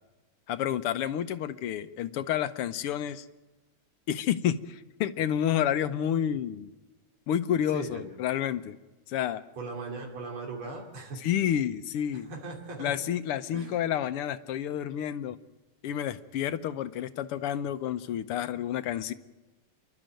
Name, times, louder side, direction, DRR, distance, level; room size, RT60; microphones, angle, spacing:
voice 1, 0.5-3.3 4.1-6.7 7.3-8.8 9.1-9.4 11.2-12.3 12.8-15.4 15.8-19.1, left 10 dB, 85° left, 12 dB, 1.8 m, -29 dB
voice 2, 7.7-8.1 9.6-11.2 12.3-13.0 13.5-13.7, right 3 dB, 70° right, 0 dB, 3.8 m, -38 dB
29.0 x 12.0 x 9.0 m, 1.1 s
omnidirectional pair, 2.4 m